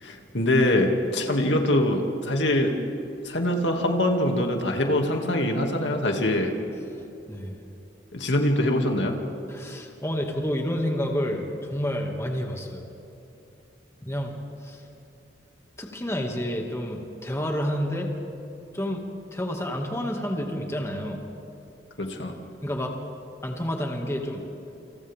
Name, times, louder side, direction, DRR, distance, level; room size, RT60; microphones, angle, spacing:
voice 1, 0.0-2.8 3.2-6.5 8.1-9.2 22.0-22.3, left 1 dB, 90° left, 2 dB, 2.5 m, -23 dB
voice 2, 9.5-12.8 14.0-14.4 14.6-14.8 15.8-18.1 18.7-19.0 19.3-21.2 22.6-23.0 23.4-24.4, equal, 15° left, 1 dB, 2.2 m, -29 dB
29.0 x 27.5 x 3.7 m, 2.9 s
head